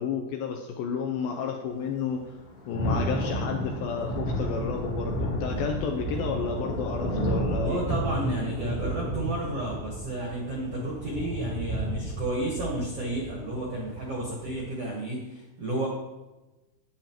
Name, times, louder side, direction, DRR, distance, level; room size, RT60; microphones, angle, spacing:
voice 1, 0.0-2.2 2.7-7.8, left 6 dB, 85° left, 2 dB, 2.1 m, -31 dB
Thunder / Rain, 2.2-14.6, equal, 70° left, 1.3 m, -32 dB
voice 2, 7.6-15.9, right 1 dB, 75° right, -3 dB, 1.4 m, -32 dB
9.3 x 9.1 x 3.0 m, 1.1 s
omnidirectional pair, 5.0 m